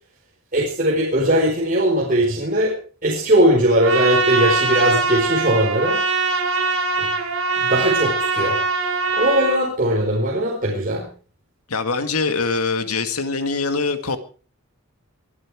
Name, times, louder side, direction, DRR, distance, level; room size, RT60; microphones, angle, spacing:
voice 1, 0.5-2.8 3.0-6.0 7.0-7.1 7.6-8.6 9.1-11.1, right 1 dB, 35° right, -3 dB, 4.7 m, -19 dB
Trumpet, 3.8-9.6, right 3 dB, 60° right, 5.7 m, -22 dB
voice 2, 11.7-14.2, left 4 dB, 80° left, 8 dB, 2.0 m, -23 dB
23.0 x 12.5 x 4.9 m, 0.39 s
head